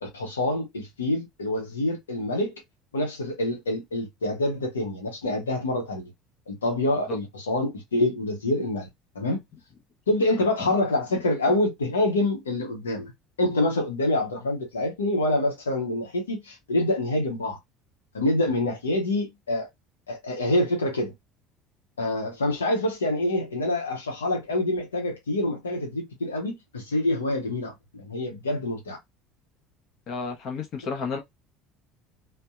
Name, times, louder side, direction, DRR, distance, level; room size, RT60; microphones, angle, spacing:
voice 1, 0.0-2.5 2.9-6.0 6.5-8.9 9.1-9.4 10.1-13.1 13.4-17.6 18.1-19.7 20.1-21.1 22.0-29.0, left 1 dB, 75° left, 0.8 m, -26 dB
voice 2, 10.4-10.7 30.1-31.2, left 5 dB, 45° left, 0.8 m, -32 dB
2.6 x 2.1 x 2.3 m
figure-of-eight pair, 65°, 0 cm